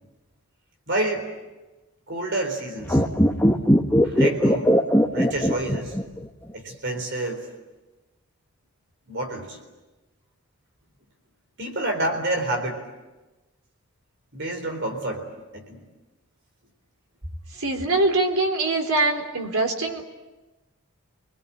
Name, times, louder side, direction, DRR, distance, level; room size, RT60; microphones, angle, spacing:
voice 1, 0.9-1.3 2.1-3.0 4.0-4.7 5.1-6.0 6.5-7.5 9.1-9.6 11.6-12.8 14.3-15.2 15.5-15.8, right 1 dB, 55° right, 5 dB, 4.1 m, -28 dB
sound 1, 2.8-6.2 6.5-6.6, equal, 10° left, 1.2 m, -19 dB
voice 2, 17.5-20.0, right 2 dB, 85° right, 3 dB, 4.0 m, -23 dB
27.0 x 21.0 x 9.0 m, 1.1 s
head